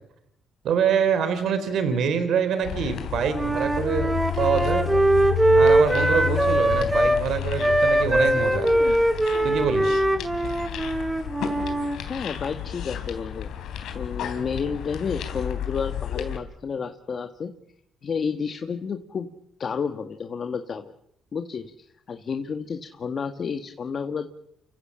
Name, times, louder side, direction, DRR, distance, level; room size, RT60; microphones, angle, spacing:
voice 1, 0.6-5.0 5.6-8.7 9.4-10.0, right 7 dB, 75° right, 10 dB, 3.8 m, -25 dB
sound 1, 2.6-16.4, left 10 dB, 80° left, 3.7 m, -31 dB
Wind instrument woodwind instrument, 3.3-7.2 7.6-12.0, right 1 dB, 10° right, 2.1 m, -21 dB
voice 2, 12.1-13.5 13.9-17.5 18.0-19.3 19.6-20.9 21.3-21.7 22.1-24.3, left 6 dB, 50° left, 6 dB, 1.6 m, -30 dB
29.5 x 15.5 x 7.6 m, 0.79 s
cardioid pair, 90°, 0 cm